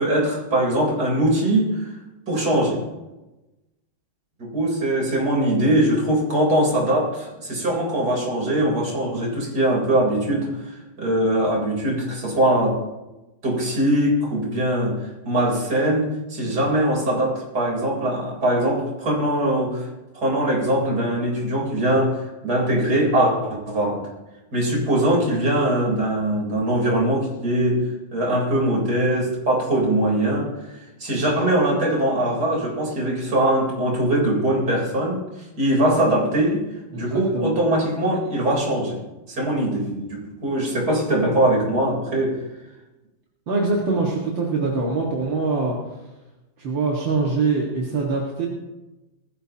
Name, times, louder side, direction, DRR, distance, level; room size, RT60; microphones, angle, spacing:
voice 1, 0.0-1.9 2.3-2.8 4.4-12.8 13.4-19.9 20.1-24.0 24.5-27.8 28.1-35.2 35.6-36.6 37.0-39.0 39.3-42.4, right 1 dB, 50° right, -2 dB, 4.5 m, -22 dB
voice 2, 36.9-37.6 43.5-45.8 46.6-48.5, right 3 dB, 75° right, -3 dB, 2.7 m, -23 dB
20.0 x 14.0 x 2.9 m, 1.0 s
omnidirectional pair, 2.1 m